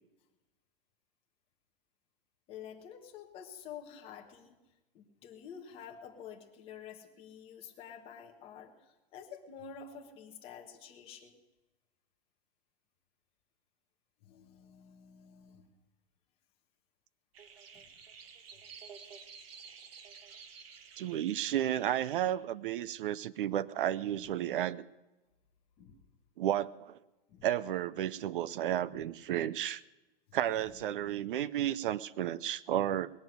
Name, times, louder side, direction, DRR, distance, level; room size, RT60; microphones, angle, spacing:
voice 1, 2.5-4.6 4.9-11.4 14.2-15.7 17.7-17.8 25.8-26.0 27.3-27.5 28.9-29.0 30.3-30.4 30.7-31.2, left 7 dB, 20° left, 2 dB, 1.3 m, -49 dB
sound 1, 17.3-22.3, right 6 dB, 80° right, 1.7 m, -52 dB
voice 2, 21.0-24.8 26.4-27.0 27.4-29.8 30.3-33.1, right 11 dB, 65° right, 19 dB, 0.6 m, -32 dB
20.0 x 6.9 x 9.4 m, 1.1 s
supercardioid pair, 175°, 29 cm